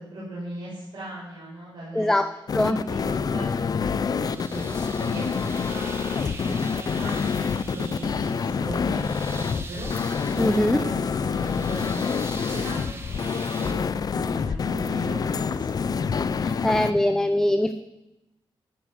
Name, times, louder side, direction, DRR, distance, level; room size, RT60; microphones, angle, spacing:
voice 1, 0.0-2.1 2.5-7.4 7.7-9.9 10.4-12.0 12.4-13.8 14.1-15.6 16.6-17.3, equal, 55° right, -8 dB, 6.7 m, -38 dB
voice 2, 1.9-2.3 2.5-2.8 10.4-10.8 16.4-17.7, left 1 dB, 5° left, 10 dB, 0.6 m, -22 dB
sound 1, 2.5-16.9, left 6 dB, 45° left, 0.6 m, -27 dB
sound 2, 4.1-13.7, right 2 dB, 30° right, 1.8 m, -42 dB
13.5 x 9.7 x 8.0 m, 0.93 s
wide cardioid pair, 150°, 9 cm